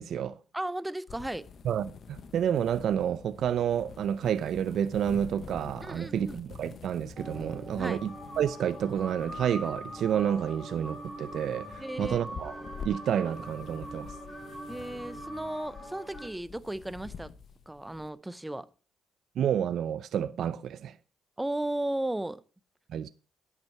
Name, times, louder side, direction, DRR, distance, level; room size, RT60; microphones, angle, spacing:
voice 1, 0.0-0.4 1.6-12.5 12.8-14.1 19.4-21.0 22.9-23.1, right 9 dB, 70° right, 0.5 m, -30 dB
voice 2, 0.5-1.5 5.8-6.4 7.8-8.0 11.8-12.2 14.7-17.3 17.7-18.7 21.4-22.4, right 1 dB, 10° right, 0.7 m, -35 dB
sound 1, 1.1-18.1, left 6 dB, 55° left, 1.0 m, -47 dB
sound 2, 7.2-16.3, equal, 15° left, 4.1 m, -43 dB
10.5 x 8.3 x 4.6 m
cardioid pair, 90°, 0 cm